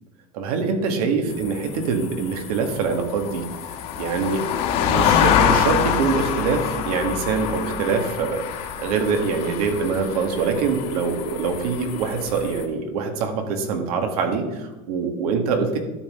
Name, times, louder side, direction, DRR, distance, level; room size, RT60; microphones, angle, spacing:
voice 1, 0.3-3.4 4.0-4.5 4.8-15.8, right 5 dB, 90° right, 5 dB, 1.8 m, -24 dB
sound 1, 1.3-12.6, left 8 dB, 55° left, 1.4 m, -26 dB
12.0 x 7.5 x 3.7 m, 1.1 s
supercardioid pair, 150°, 19 cm